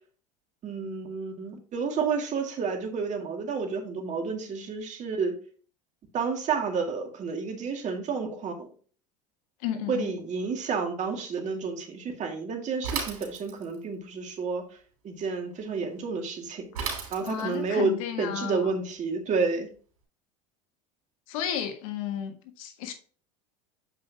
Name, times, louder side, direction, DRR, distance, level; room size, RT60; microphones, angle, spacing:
voice 1, 0.6-5.3 6.1-8.7 9.9-14.6 15.0-16.6 17.1-19.7, right 5 dB, 40° right, 2.0 m, -30 dB
voice 2, 9.6-10.1 17.2-18.8 21.3-22.9, left 9 dB, 75° left, 1.4 m, -33 dB
Bicycle / Mechanisms, 12.8-13.8 16.7-17.7, right 6 dB, 90° right, 2.9 m, -34 dB
7.7 x 5.4 x 2.8 m
hypercardioid pair, 90°, 18 cm